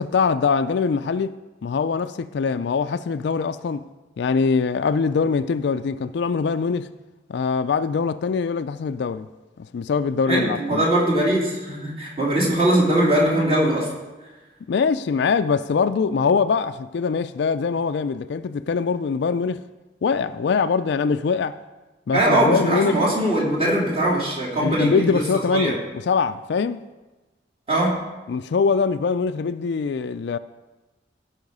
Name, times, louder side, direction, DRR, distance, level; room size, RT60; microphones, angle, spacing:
voice 1, 0.0-3.8 4.2-6.9 7.3-9.3 9.7-10.8 14.7-19.6 20.0-21.6 22.1-23.0 24.6-25.8 26.1-26.8 28.3-30.4, left 5 dB, 65° left, 0.3 m, -23 dB
voice 2, 10.3-13.9 22.1-25.2 25.5-25.7 27.7-27.9, right 1 dB, 35° right, 3.1 m, -21 dB
16.5 x 5.7 x 5.4 m
head